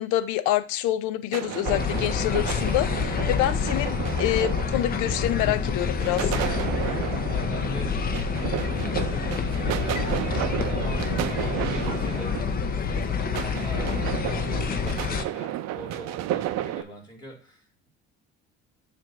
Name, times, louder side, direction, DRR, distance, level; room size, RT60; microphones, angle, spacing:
voice 1, 0.0-6.4, left 13 dB, 75° left, 0.6 m, -27 dB
sound 1, 1.3-16.8, right 13 dB, 60° right, 0.5 m, -32 dB
sound 2, 1.6-15.2, left 6 dB, 30° left, 0.6 m, -27 dB
voice 2, 7.3-8.0 8.6-10.1 10.6-13.9 14.2-17.9, right 1 dB, 15° left, 2.3 m, -42 dB
7.5 x 2.6 x 5.8 m
cardioid pair, 120°, 30 cm